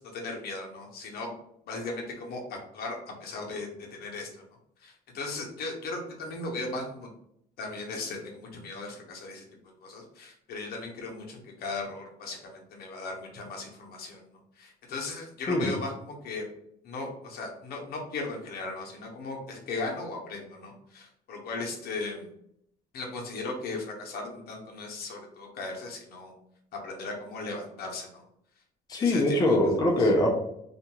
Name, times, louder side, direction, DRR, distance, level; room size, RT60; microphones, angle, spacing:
voice 1, 0.0-1.3 1.7-4.3 4.8-7.1 7.6-9.4 9.8-14.3 14.6-16.4 16.8-22.3 22.9-26.3 26.8-28.2 29.0-29.6 30.0-30.1, left 3 dB, 65° left, 0 dB, 0.7 m, -37 dB
voice 2, 15.5-15.8 28.9-30.4, left 1 dB, 25° left, 0 dB, 0.5 m, -23 dB
2.4 x 2.2 x 2.9 m, 0.74 s
cardioid pair, 110°, 17 cm